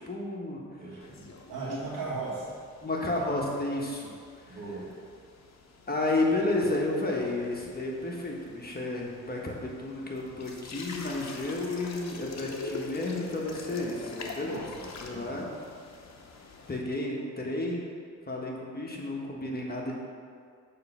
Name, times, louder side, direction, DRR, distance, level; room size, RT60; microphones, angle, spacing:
voice 1, 0.0-0.6 1.7-1.8 2.8-4.1 4.4-4.6 5.9-14.7 15.0-15.5 16.7-17.8 18.3-20.0, left 2 dB, 30° left, -2 dB, 1.5 m, -31 dB
voice 2, 0.8-2.6 4.4-4.9 14.4-15.4, right 3 dB, 85° right, -5 dB, 1.7 m, -38 dB
sound 1, 1.0-16.8, left 4 dB, 60° left, 0.9 m, -45 dB
6.6 x 3.4 x 6.1 m, 2.2 s
supercardioid pair, 50°, 31 cm